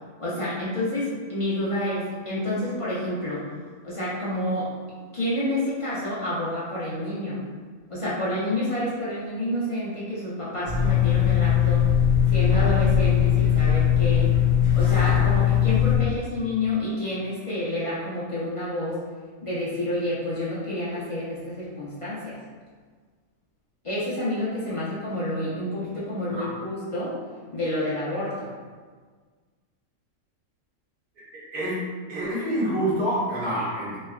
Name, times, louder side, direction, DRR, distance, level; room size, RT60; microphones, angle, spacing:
voice 1, 0.2-3.4 3.8-4.7 5.1-7.4 7.9-11.8 12.3-14.3 14.7-19.0 19.4-22.4 23.8-27.2 27.5-28.5, left 1 dB, 30° left, -10 dB, 0.6 m, -29 dB
sound 1, 10.7-16.0, left 9 dB, 5° left, 1.0 m, -20 dB
voice 2, 31.5-31.8 32.1-34.0, right 1 dB, 75° right, -8 dB, 1.7 m, -26 dB
3.3 x 3.2 x 2.3 m, 1.5 s
omnidirectional pair, 1.6 m